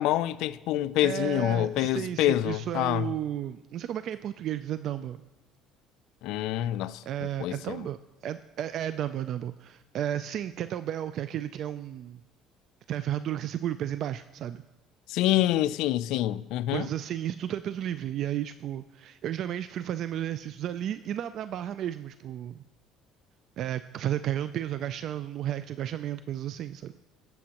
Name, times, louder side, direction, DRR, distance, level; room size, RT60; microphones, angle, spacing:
voice 1, 0.0-3.1 6.2-7.0 7.4-7.8 15.1-16.9, left 14 dB, 75° left, 0.4 m, -26 dB
voice 2, 1.0-5.2 7.0-8.0 8.2-12.2 12.9-14.6 16.7-22.6 23.6-26.9, right 11 dB, 55° right, 0.3 m, -33 dB
19.0 x 7.1 x 2.9 m
cardioid pair, 110°, 0 cm